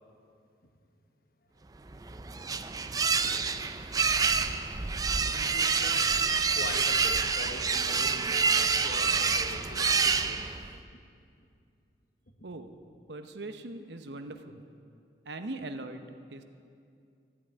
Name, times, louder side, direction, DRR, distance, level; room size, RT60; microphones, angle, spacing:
sound 1, 1.9-10.8, right 5 dB, 20° right, 0.4 m, -27 dB
voice 1, 5.3-6.2 6.5-11.0, left 2 dB, 55° left, 5 dB, 1.2 m, -43 dB
voice 2, 13.1-14.6 15.3-16.0 16.3-16.4, right 2 dB, 75° right, 8 dB, 0.9 m, -40 dB
13.5 x 8.6 x 9.1 m, 2.4 s
head